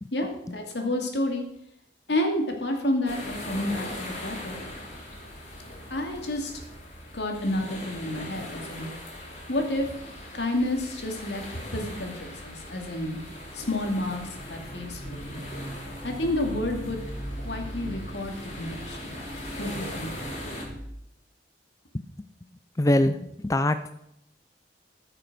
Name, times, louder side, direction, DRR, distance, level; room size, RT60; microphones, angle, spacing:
voice 1, 0.1-1.5 2.1-4.6 5.9-6.6 7.1-8.9 9.5-9.9 10.3-13.2 13.5-15.4 16.0-17.0 17.4-19.1 19.6-20.3, left 1 dB, 75° left, 3 dB, 2.4 m, -30 dB
sound 1, 3.1-20.7, left 1 dB, 40° left, 3.7 m, -40 dB
sound 2, 12.4-20.8, right 1 dB, 25° right, 3.2 m, -40 dB
voice 2, 21.9-22.3 22.8-23.9, left 1 dB, 20° left, 10 dB, 0.4 m, -24 dB
14.5 x 6.8 x 6.1 m, 0.79 s
head